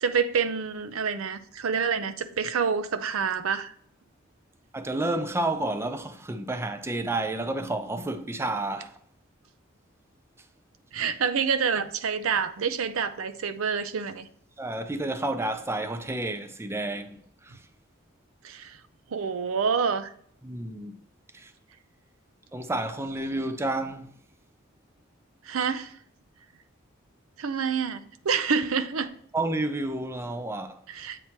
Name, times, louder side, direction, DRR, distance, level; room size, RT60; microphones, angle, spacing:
voice 1, 0.0-3.7 10.9-14.3 18.4-18.8 19.1-20.1 25.4-25.9 27.4-29.1 30.9-31.2, right 6 dB, 80° right, 0.5 m, -27 dB
voice 2, 4.7-9.0 14.6-17.7 20.4-21.0 21.3-21.5 22.5-24.2 29.3-30.8, right 2 dB, 10° right, 0.4 m, -30 dB
8.1 x 3.0 x 4.3 m
head